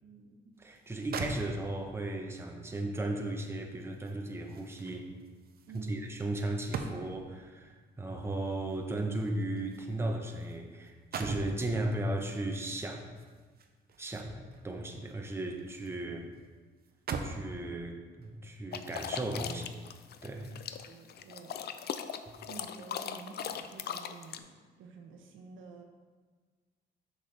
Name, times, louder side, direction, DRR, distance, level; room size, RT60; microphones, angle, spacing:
voice 1, 0.0-0.5 5.7-6.0 20.9-21.6 22.4-24.5 24.8-25.8, right 4 dB, 80° right, 3 dB, 0.9 m, -49 dB
voice 2, 0.6-5.1 5.7-13.2 14.0-16.3 17.2-19.8 20.2-20.5 22.3-22.4, right 1 dB, 10° right, 2 dB, 0.8 m, -36 dB
sound 1, 0.8-0.9 1.1-2.0 3.4-7.4 8.4-10.6 10.9-11.6 13.1-14.7 15.1-16.0 16.3-16.4 16.8-17.5 18.2-18.4, right 5 dB, 50° right, 0.6 m, -42 dB
sound 2, 18.7-24.4, left 8 dB, 55° left, 0.4 m, -39 dB
6.5 x 6.2 x 3.3 m, 1.5 s
cardioid pair, 90°, 20 cm